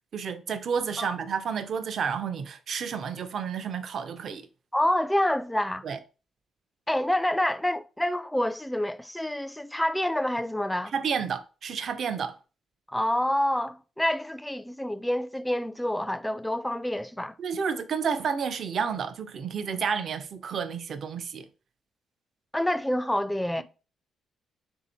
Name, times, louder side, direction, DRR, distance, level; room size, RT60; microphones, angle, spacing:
voice 1, 0.1-4.4 5.8-6.0 10.9-12.3 17.4-21.5, right 6 dB, 55° right, 0.5 m, -30 dB
voice 2, 4.7-5.8 6.9-10.9 12.9-17.3 22.5-23.6, left 1 dB, 5° left, 0.3 m, -27 dB
3.4 x 2.7 x 4.1 m
cardioid pair, 90°, 0 cm